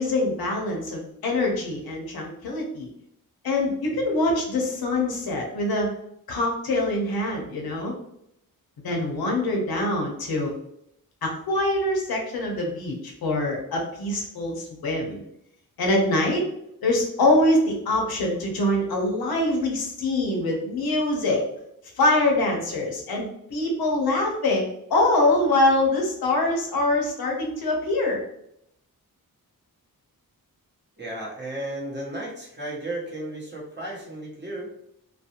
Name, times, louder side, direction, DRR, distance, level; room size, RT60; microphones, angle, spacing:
voice 1, 0.0-2.9 3.4-5.9 6.3-7.9 8.8-10.5 11.2-15.2 15.8-16.4 16.8-21.4 22.0-28.2, left 2 dB, 85° left, 0 dB, 0.7 m, -24 dB
voice 2, 31.0-34.7, right 1 dB, 30° right, -4 dB, 0.8 m, -34 dB
2.4 x 2.0 x 2.8 m, 0.77 s
wide cardioid pair, 115°, 36 cm